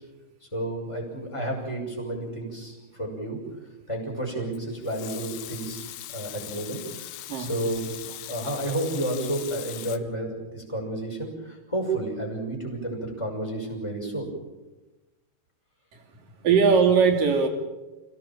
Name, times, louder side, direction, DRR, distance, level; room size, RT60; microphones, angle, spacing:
voice 1, 0.5-3.4 3.9-14.3, right 1 dB, 5° left, -1 dB, 5.7 m, -31 dB
Water tap faucet / Sink (filling or washing) / Liquid, 4.5-10.0, left 14 dB, 85° left, 3.4 m, -40 dB
voice 2, 16.4-17.5, right 5 dB, 50° right, 1 dB, 4.3 m, -20 dB
29.0 x 17.5 x 7.4 m, 1.1 s
omnidirectional pair, 5.4 m